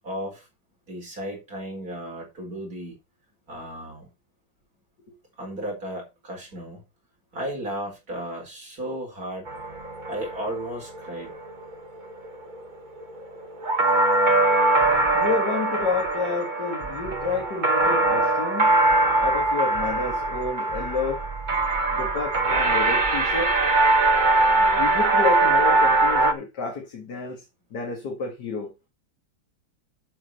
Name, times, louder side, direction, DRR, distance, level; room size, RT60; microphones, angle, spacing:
voice 1, 0.0-0.5 0.9-3.0 3.5-4.1 5.4-6.8 7.3-9.5 10.1-11.3 24.6-24.8, right 1 dB, 50° right, 4.8 m, -34 dB
sound 1, 9.5-26.3, right 2 dB, 30° right, 1.2 m, -22 dB
voice 2, 15.1-18.8 19.2-21.2 21.9-23.6 24.8-27.4 27.7-28.7, left 4 dB, 60° left, 2.5 m, -30 dB
8.7 x 7.4 x 4.3 m
omnidirectional pair, 2.0 m